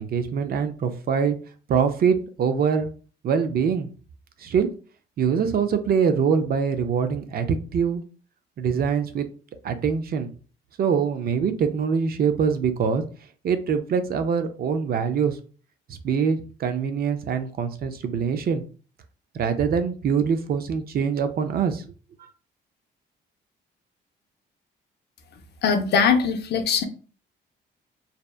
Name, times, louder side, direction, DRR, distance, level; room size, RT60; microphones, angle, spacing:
voice 1, 0.0-1.4 1.7-2.9 3.2-3.9 4.4-4.7 5.2-8.1 8.6-9.3 9.6-10.3 10.8-13.0 13.4-15.4 15.9-18.6 19.3-21.8, right 6 dB, 50° right, 9 dB, 0.4 m, -24 dB
voice 2, 25.6-26.9, left 6 dB, 60° left, 7 dB, 0.5 m, -21 dB
2.7 x 2.1 x 2.3 m, 0.38 s
cardioid pair, 90°, 20 cm